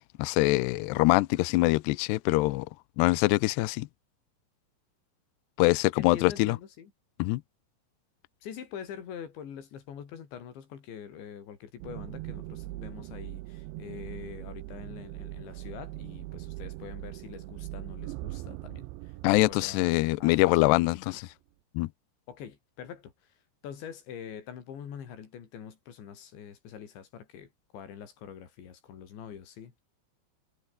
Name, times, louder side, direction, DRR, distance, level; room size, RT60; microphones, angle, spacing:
voice 1, 0.2-2.7 3.0-3.9 5.6-6.6 7.2-7.4 19.2-21.2 21.8-21.9, left 21 dB, 85° left, 2.4 m, -24 dB
voice 2, 6.0-6.9 8.4-21.2 22.3-23.1 23.6-29.8, left 8 dB, 65° left, 5.7 m, -44 dB
sound 1, 11.8-21.1, right 19 dB, 80° right, 2.9 m, -41 dB
omnidirectional pair, 5.7 m